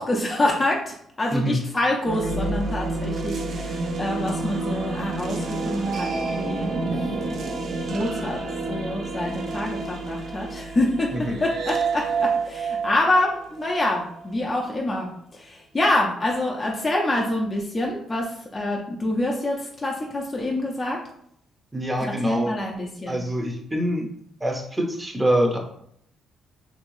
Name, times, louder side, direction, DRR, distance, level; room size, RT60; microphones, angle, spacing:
voice 1, 0.0-7.1 7.9-8.4 8.7-21.0 22.0-23.2, left 1 dB, 25° left, -2 dB, 0.5 m, -26 dB
sound 1, 2.0-14.2, right 3 dB, 60° right, 0.6 m, -29 dB
voice 2, 11.1-11.4 21.7-22.5 23.1-24.1 24.4-25.6, equal, 10° right, 1 dB, 0.7 m, -25 dB
3.0 x 2.6 x 3.0 m, 0.70 s
cardioid pair, 90°, 0 cm